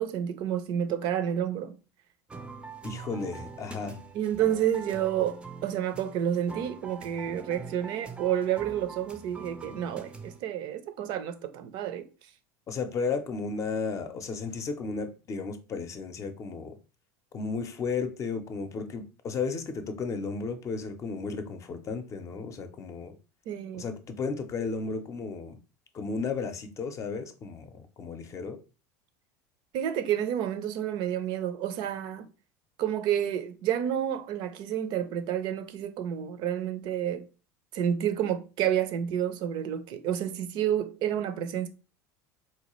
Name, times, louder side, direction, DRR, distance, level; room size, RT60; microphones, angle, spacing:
voice 1, 0.0-1.7 4.1-12.1 23.5-23.9 29.7-32.3 32.8-37.3 37.7-41.7, right 10 dB, 60° right, 0.5 m, -30 dB
sound 1, 2.3-10.4, right 4 dB, 10° right, 0.5 m, -44 dB
voice 2, 2.8-4.0 12.7-16.8 17.3-23.1 23.7-25.6 25.9-28.6, left 4 dB, 35° left, 0.6 m, -34 dB
4.1 x 2.3 x 3.0 m
supercardioid pair, 95°, 9 cm